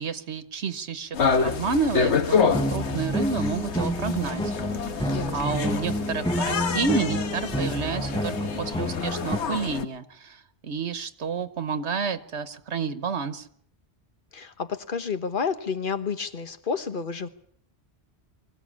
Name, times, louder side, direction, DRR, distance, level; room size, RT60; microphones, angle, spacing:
voice 1, 0.0-4.8 5.3-13.5, right 5 dB, 80° right, 11 dB, 1.4 m, -30 dB
sound 1, 1.1-9.8, left 6 dB, 85° left, 1.4 m, -28 dB
sound 2, 2.5-9.4, equal, 5° left, 0.8 m, -29 dB
voice 2, 5.1-5.6 14.3-17.3, left 6 dB, 50° left, 10 dB, 1.4 m, -30 dB
24.5 x 15.5 x 8.6 m, 0.64 s
omnidirectional pair, 1.1 m